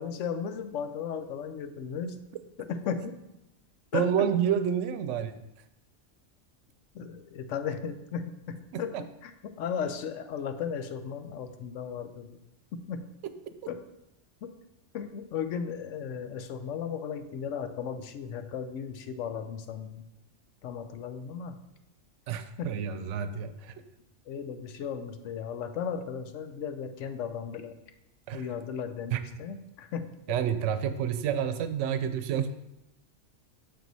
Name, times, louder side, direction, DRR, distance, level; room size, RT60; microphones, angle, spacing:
voice 1, 0.0-2.2 2.6-3.1 3.9-4.3 6.9-8.9 9.2-12.4 12.7-13.0 13.7-13.8 14.4-14.5 14.9-20.0 20.6-21.6 22.6-22.7 24.3-27.8 28.3-30.4, left 7 dB, 80° left, 9 dB, 1.0 m, -36 dB
voice 2, 3.9-5.3 8.7-9.0 22.3-23.7 28.3-28.4 29.1-29.2 30.3-32.5, right 8 dB, 75° right, 10 dB, 0.9 m, -29 dB
6.7 x 4.6 x 4.0 m, 0.89 s
omnidirectional pair, 1.3 m